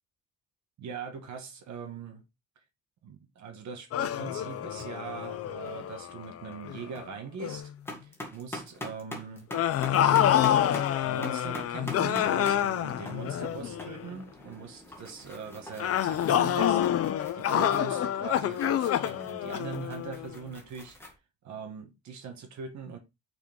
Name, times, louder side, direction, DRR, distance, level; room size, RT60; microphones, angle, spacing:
voice 1, 0.8-2.2 3.0-7.7 8.0-9.5 9.9-16.8 17.3-21.1 21.4-23.0, right 5 dB, 65° right, 1.7 m, -41 dB
sound 1, 3.9-7.0 7.4-7.7 9.5-14.1 15.8-20.4, left 11 dB, 50° left, 0.6 m, -27 dB
sound 2, 4.7-4.9 5.2-5.8 6.1-6.2 6.5-7.0 7.4-21.2, left 1 dB, 10° left, 1.8 m, -44 dB
6.2 x 4.9 x 3.6 m
cardioid pair, 180°, 31 cm